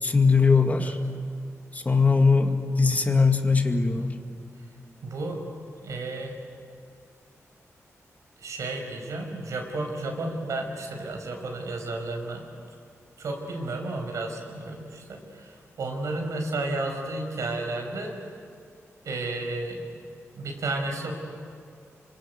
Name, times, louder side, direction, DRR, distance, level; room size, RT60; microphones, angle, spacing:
voice 1, 0.0-1.0 1.7-4.2, left 4 dB, 30° left, 5 dB, 2.1 m, -21 dB
voice 2, 5.0-5.4 5.8-6.3 8.4-12.4 13.2-18.1 19.0-19.9 20.3-21.1, right 2 dB, 85° right, 2 dB, 5.6 m, -32 dB
28.0 x 26.0 x 8.2 m, 2.3 s
wide cardioid pair, 95°, 5 cm